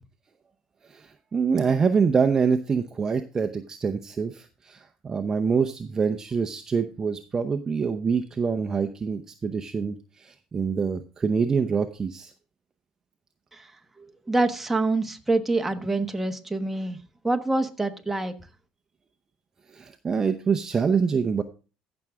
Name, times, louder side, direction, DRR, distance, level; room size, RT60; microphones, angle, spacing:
voice 1, 0.9-12.3 19.7-21.4, right 5 dB, 25° right, 6 dB, 0.7 m, -25 dB
voice 2, 14.0-17.0 17.2-18.3, right 2 dB, 10° right, 6 dB, 1.2 m, -26 dB
15.0 x 6.2 x 3.6 m, 0.33 s
cardioid pair, 115°, 2 cm